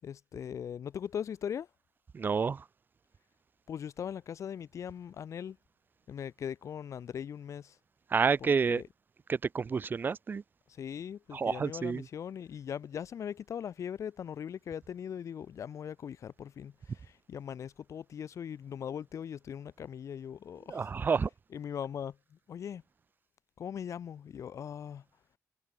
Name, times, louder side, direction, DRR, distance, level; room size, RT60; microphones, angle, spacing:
voice 1, 0.0-1.7 3.7-5.6 6.1-7.8 8.7-8.9 10.7-20.9 21.5-22.8 23.6-25.0, left 8 dB, 55° left, 6.3 m, -40 dB
voice 2, 2.1-2.6 8.1-8.8 9.3-10.4 11.3-12.1 20.7-21.3, right 5 dB, 30° right, 1.9 m, -29 dB
wide cardioid pair, 175°, 6 cm